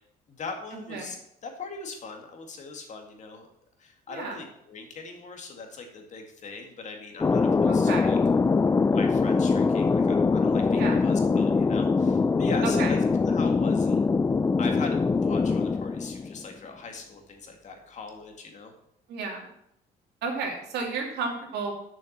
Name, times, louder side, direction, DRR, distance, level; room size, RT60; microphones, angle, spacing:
voice 1, 0.3-1.2 1.4-3.5 3.8-8.2 8.9-14.0 14.6-18.7, left 4 dB, 45° left, 3 dB, 2.1 m, -40 dB
Thunder, 7.2-16.5, left 4 dB, 15° left, 0.3 m, -23 dB
voice 2, 7.7-8.1 10.7-11.0 12.6-12.9 19.1-19.5 20.2-21.7, right 4 dB, 80° right, 0 dB, 2.7 m, -32 dB
7.2 x 6.4 x 7.2 m, 0.75 s
cardioid pair, 110°, 17 cm